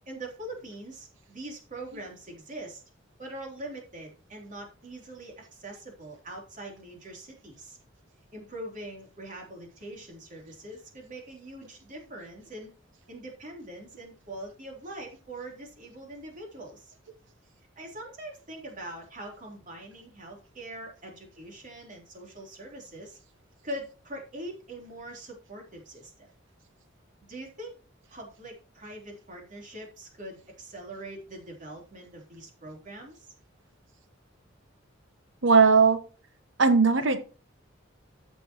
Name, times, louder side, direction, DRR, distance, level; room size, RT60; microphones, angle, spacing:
voice 1, 0.1-2.8 3.2-7.8 8.3-12.7 13.1-16.9 17.8-23.2 23.6-26.3 27.3-27.7 28.1-33.3, right 1 dB, 40° right, 0 dB, 3.7 m, -42 dB
voice 2, 35.4-36.0 36.6-37.2, right 4 dB, 65° right, 9 dB, 1.2 m, -18 dB
14.5 x 6.3 x 3.0 m, 0.35 s
head